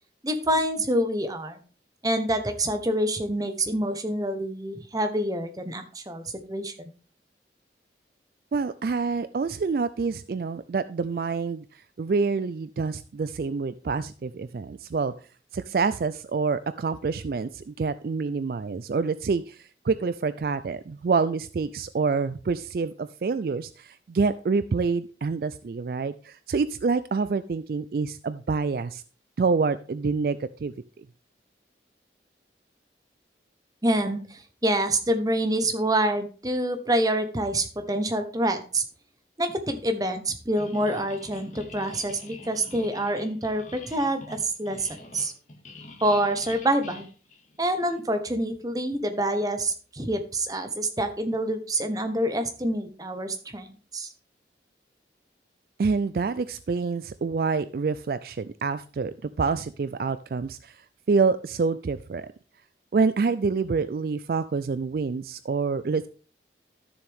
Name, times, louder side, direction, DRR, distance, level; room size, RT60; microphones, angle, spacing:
voice 1, 0.2-1.6 2.0-6.9 33.8-38.8 39.4-45.3 46.0-47.1 47.6-54.1, right 1 dB, 20° right, 7 dB, 1.0 m, -27 dB
voice 2, 8.5-15.1 15.5-29.0 29.4-31.1 55.8-60.8 61.1-62.3 62.9-66.1, right 4 dB, 55° right, 14 dB, 0.3 m, -27 dB
sound 1, 40.6-48.0, left 2 dB, 40° left, 1.9 m, -45 dB
12.5 x 7.0 x 3.5 m, 0.38 s
head